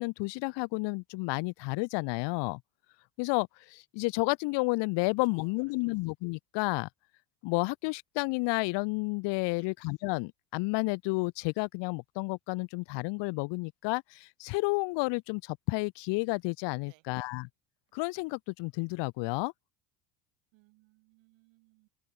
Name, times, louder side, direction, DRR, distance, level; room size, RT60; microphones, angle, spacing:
voice 1, 0.0-2.6 3.2-6.9 7.4-17.5 17.9-19.5, left 26 dB, 65° left, 0.8 m, -31 dB
voice 2, 20.5-21.9, right 24 dB, 70° right, 7.2 m, -64 dB
open air
hypercardioid pair, 80°, 46 cm